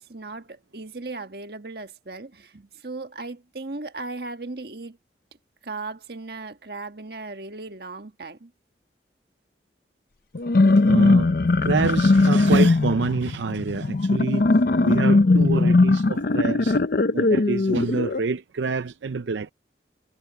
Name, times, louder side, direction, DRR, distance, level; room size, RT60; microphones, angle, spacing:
voice 1, 0.0-5.0 5.6-8.5, right 3 dB, 60° right, 1.5 m, -37 dB
sound 1, 10.3-18.2, left 2 dB, 55° left, 0.6 m, -19 dB
voice 2, 10.8-11.3 11.6-14.5 14.8-16.8 17.1-19.5, right 4 dB, 85° right, 0.5 m, -27 dB
head